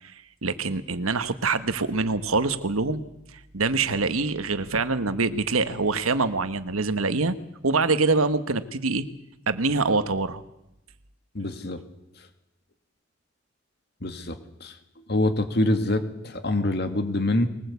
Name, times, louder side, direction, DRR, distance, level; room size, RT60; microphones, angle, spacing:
voice 1, 0.0-3.0 3.3-7.4 7.6-9.0 9.5-10.4, right 3 dB, 90° right, 11 dB, 1.4 m, -25 dB
voice 2, 11.3-11.8 14.0-14.3 14.6-14.7 15.1-17.5, left 1 dB, 50° left, 8 dB, 2.1 m, -25 dB
22.5 x 19.5 x 8.3 m, 0.87 s
head